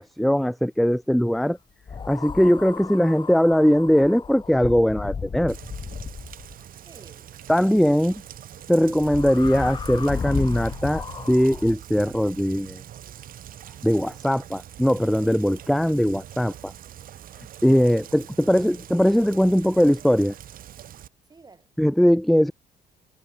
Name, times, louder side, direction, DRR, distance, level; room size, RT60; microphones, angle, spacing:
voice 1, 0.0-1.6 2.1-5.6 7.5-8.1 8.7-12.8 13.8-16.7 17.6-20.3 21.8-22.5, equal, ahead, 0.9 m, -20 dB
sound 1, 1.9-6.6 9.0-11.7, left 5 dB, 25° left, 1.0 m, -34 dB
Rain, 5.5-21.1, right 11 dB, 60° right, 1.9 m, -43 dB
voice 2, 6.8-8.3 21.3-21.7, right 4 dB, 25° right, 6.6 m, -54 dB
cardioid pair, 110°, 17 cm